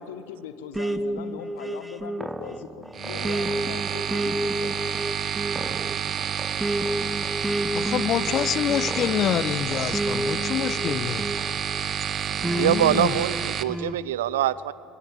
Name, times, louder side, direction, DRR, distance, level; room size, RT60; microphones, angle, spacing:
voice 1, 0.0-5.0 12.3-13.0, left 8 dB, 70° left, 10 dB, 1.6 m, -40 dB
sound 1, 0.7-11.8 12.4-14.0, right 1 dB, 10° right, 1.1 m, -31 dB
sound 2, 2.9-13.6, right 8 dB, 40° right, 1.0 m, -29 dB
voice 2, 7.7-11.3 12.6-13.1, left 10 dB, 45° left, 17 dB, 0.8 m, -26 dB
voice 3, 12.6-14.7, right 12 dB, 70° right, 19 dB, 0.6 m, -24 dB
25.0 x 20.5 x 7.6 m, 2.7 s
figure-of-eight pair, 65°, 0 cm